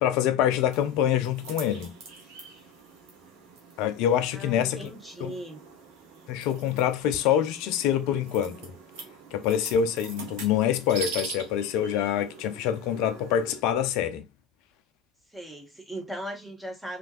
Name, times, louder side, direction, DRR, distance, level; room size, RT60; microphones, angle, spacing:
voice 1, 0.0-1.9 3.8-4.9 5.2-5.3 6.3-8.7 9.3-14.2, left 9 dB, 70° left, 0.5 m, -25 dB
sound 1, 0.7-13.6, right 4 dB, 75° right, 1.2 m, -43 dB
voice 2, 4.3-5.6 15.3-17.0, right 1 dB, 5° right, 1.5 m, -38 dB
3.3 x 3.1 x 2.5 m
hypercardioid pair, 65°, 0 cm